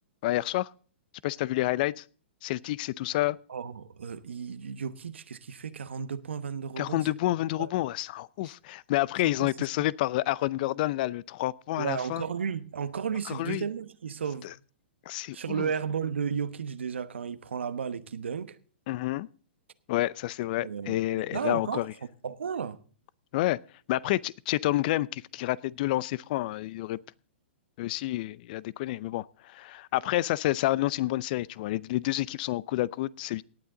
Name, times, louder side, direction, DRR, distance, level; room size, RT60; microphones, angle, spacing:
voice 1, 0.2-0.7 1.2-2.0 2.4-3.4 6.8-12.2 13.3-13.6 15.1-15.7 18.9-19.3 19.9-21.9 23.3-23.6 23.9-27.0 27.8-33.4, left 16 dB, 50° left, 0.5 m, -29 dB
voice 2, 3.5-7.1 7.6-7.7 9.2-9.7 11.8-14.5 15.3-18.6 20.6-22.8, right 7 dB, 85° right, 1.1 m, -34 dB
18.0 x 9.6 x 3.8 m
hypercardioid pair, 130°, 6 cm